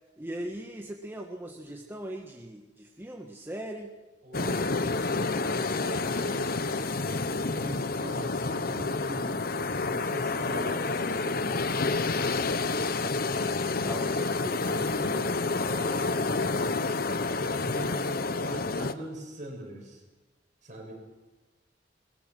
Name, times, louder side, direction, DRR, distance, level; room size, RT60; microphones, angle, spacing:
voice 1, 0.2-3.9 13.7-15.3, right 1 dB, 15° right, 1 dB, 1.6 m, -40 dB
voice 2, 4.2-12.0 15.5-16.9 17.4-20.0 20.6-20.9, right 1 dB, 45° right, 0 dB, 7.5 m, -42 dB
sound 1, 4.3-18.9, left 3 dB, 55° left, 1.1 m, -29 dB
22.5 x 21.0 x 6.2 m, 1.2 s
head